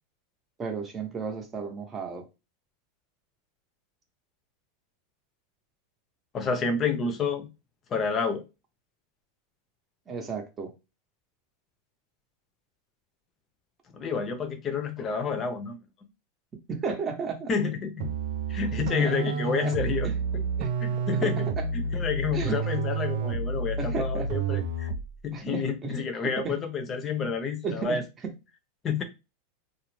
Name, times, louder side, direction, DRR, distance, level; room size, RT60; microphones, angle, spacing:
voice 1, 0.6-2.3 10.1-10.7 16.7-17.5 18.5-18.6 19.0-19.3 19.6-19.8 20.0-20.1 20.6-20.7 21.1-21.3 22.3-22.6 23.8-24.3 25.3-26.1 26.4-26.6 27.6-28.0, right 5 dB, 25° right, 0.7 m, -33 dB
voice 2, 6.3-7.5 7.9-8.4 13.9-15.8 17.5-18.1 18.5-20.4 20.8-24.9 25.2-28.0 28.8-29.0, left 5 dB, 30° left, 0.6 m, -29 dB
sound 1, 18.0-25.2, right 4 dB, 70° right, 0.4 m, -30 dB
2.4 x 2.0 x 3.1 m
hypercardioid pair, 115°, 0 cm